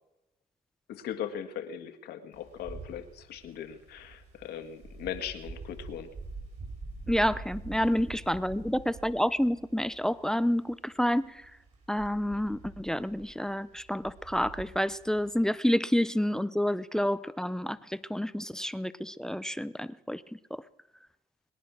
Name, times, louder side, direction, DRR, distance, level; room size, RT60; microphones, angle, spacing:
voice 1, 0.9-6.1, left 9 dB, 70° left, 7 dB, 1.8 m, -39 dB
Wind, 2.3-15.5, right 3 dB, 45° right, 5.0 m, -46 dB
voice 2, 7.1-11.3 11.9-17.8 18.1-20.2 20.5-20.6, equal, 5° left, 18 dB, 0.5 m, -29 dB
22.0 x 10.0 x 6.2 m, 0.95 s
cardioid pair, 110°, 17 cm